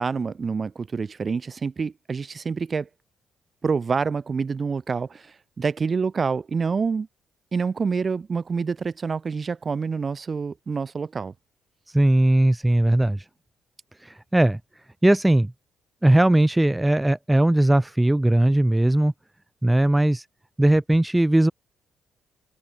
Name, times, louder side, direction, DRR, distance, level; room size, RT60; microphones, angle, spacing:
voice 1, 0.0-2.9 3.6-7.1 7.5-11.3, right 5 dB, 35° right, 4.1 m, -27 dB
voice 2, 11.9-13.3 14.0-14.6 15.0-15.5 16.0-19.1 19.6-20.2 20.6-21.5, right 1 dB, 10° right, 0.9 m, -19 dB
open air
cardioid pair, 90°, 0 cm